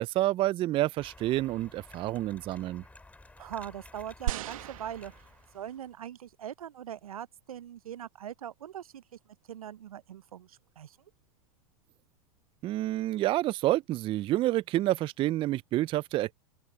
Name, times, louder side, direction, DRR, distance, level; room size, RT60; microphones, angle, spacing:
voice 1, 0.0-2.8 12.6-16.3, right 15 dB, 30° right, 0.3 m, -28 dB
sound 1, 1.0-5.9, left 2 dB, 10° left, 2.4 m, -53 dB
voice 2, 3.4-5.3 5.5-11.0, right 10 dB, 85° right, 0.6 m, -42 dB
sound 2, 4.3-5.8 6.5-6.6, right 15 dB, 70° right, 1.1 m, -36 dB
open air
hypercardioid pair, 100°, 18 cm